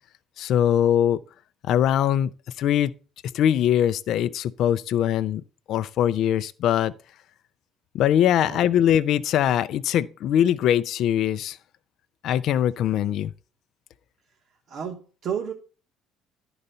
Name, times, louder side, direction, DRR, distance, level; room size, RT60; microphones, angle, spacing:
voice 1, 0.4-1.2 1.6-2.3 2.6-2.9 3.3-5.4 5.7-6.9 7.9-11.6 12.2-13.3, left 10 dB, 60° left, 0.4 m, -22 dB
voice 2, 14.7-15.5, right 8 dB, 50° right, 1.1 m, -32 dB
11.0 x 3.9 x 5.4 m
cardioid pair, 135°, 0 cm